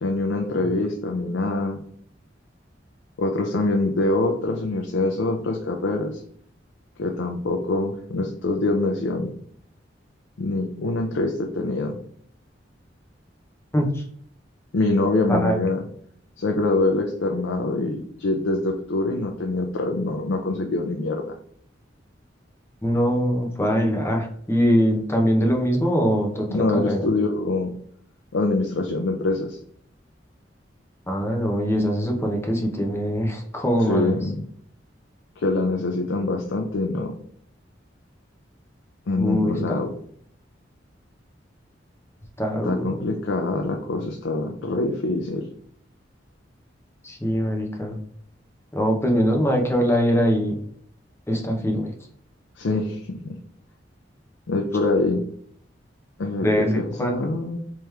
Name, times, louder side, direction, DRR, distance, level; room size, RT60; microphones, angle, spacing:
voice 1, 0.0-1.8 3.2-6.2 7.0-9.4 10.4-12.0 14.7-15.8 16.4-21.4 26.5-27.7 28.3-29.6 33.8-34.4 35.4-37.2 39.1-39.9 42.6-45.5 52.6-53.3 54.5-55.2 56.2-57.6, left 2 dB, 80° left, 2 dB, 0.5 m, -24 dB
voice 2, 22.8-26.5 26.7-27.0 31.1-34.2 39.2-39.6 42.4-42.8 47.0-48.0 48.7-50.6 51.3-51.9 56.4-57.1, equal, 15° left, 2 dB, 0.7 m, -22 dB
3.5 x 3.0 x 3.2 m, 0.63 s
head